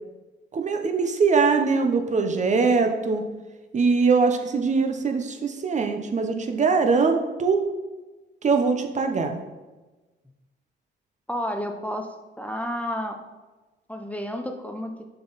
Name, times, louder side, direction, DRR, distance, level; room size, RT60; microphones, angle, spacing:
voice 1, 0.5-3.2 3.7-7.6 8.4-9.4, right 4 dB, 35° right, 5 dB, 0.7 m, -22 dB
voice 2, 11.3-13.2 13.9-14.9, equal, 5° left, 4 dB, 0.5 m, -31 dB
6.8 x 3.9 x 4.0 m, 1.2 s
cardioid pair, 90°, 20 cm